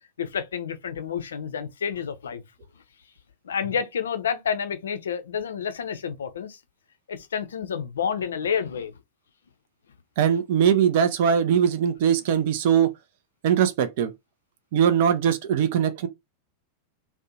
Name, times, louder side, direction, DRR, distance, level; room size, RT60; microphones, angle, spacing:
voice 1, 0.2-2.4 3.4-6.6 7.1-9.0, left 7 dB, 65° left, 0.4 m, -29 dB
voice 2, 10.2-12.9 13.4-14.1 14.7-16.1, right 8 dB, 50° right, 0.4 m, -21 dB
2.5 x 2.1 x 2.7 m
figure-of-eight pair, 90°, 0 cm